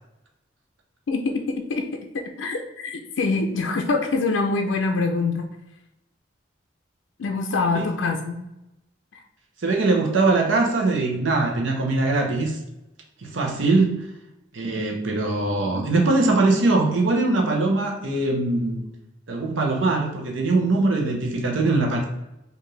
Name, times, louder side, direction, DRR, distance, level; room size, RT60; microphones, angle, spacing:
voice 1, 1.1-1.4 1.7-1.8 2.4-5.5 7.2-8.5, left 3 dB, 75° left, 3 dB, 0.4 m, -24 dB
voice 2, 9.6-12.6 13.2-14.1 14.5-18.8 19.3-22.0, right 2 dB, 85° right, 1 dB, 0.8 m, -22 dB
4.5 x 2.6 x 3.1 m, 0.92 s
head